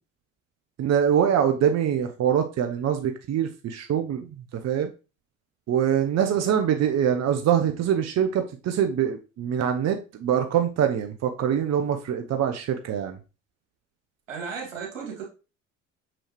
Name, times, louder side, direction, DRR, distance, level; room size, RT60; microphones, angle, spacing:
voice 1, 0.8-4.9 5.7-13.2, right 9 dB, 45° right, 6 dB, 0.9 m, -24 dB
voice 2, 14.3-15.2, right 6 dB, 85° right, 0 dB, 2.4 m, -34 dB
6.5 x 6.1 x 3.1 m, 0.31 s
hypercardioid pair, 60°, 38 cm